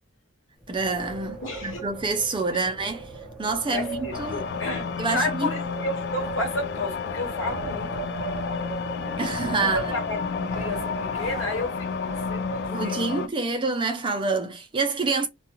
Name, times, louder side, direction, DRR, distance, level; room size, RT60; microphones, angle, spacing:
Wind, 0.6-13.2, right 3 dB, ahead, 0.8 m, -38 dB
voice 1, 0.7-3.1 3.4-4.4 5.0-5.5 9.2-9.9 12.7-15.3, right 3 dB, 25° right, 0.4 m, -27 dB
voice 2, 1.4-1.8 2.5-2.7 3.7-8.1 9.6-13.1, left 1 dB, 75° left, 1.2 m, -32 dB
sound 1, 4.1-13.3, left 6 dB, 60° left, 0.3 m, -31 dB
2.3 x 2.2 x 2.9 m
head